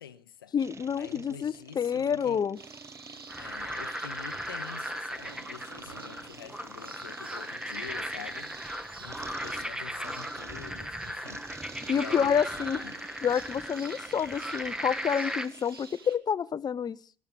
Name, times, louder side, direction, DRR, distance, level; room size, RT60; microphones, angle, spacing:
voice 1, 0.0-0.5 1.0-2.4 3.4-11.5 11.9-13.0, left 9 dB, 80° left, 0.7 m, -46 dB
voice 2, 0.5-2.6 11.9-12.8 13.2-17.0, left 7 dB, 35° left, 0.7 m, -28 dB
sound 1, 0.6-16.0, right 3 dB, 25° right, 1.0 m, -49 dB
sound 2, 2.5-16.2, right 4 dB, 85° right, 1.3 m, -50 dB
sound 3, 3.3-15.5, equal, 5° right, 1.4 m, -37 dB
21.0 x 7.7 x 9.0 m
figure-of-eight pair, 50°, 12 cm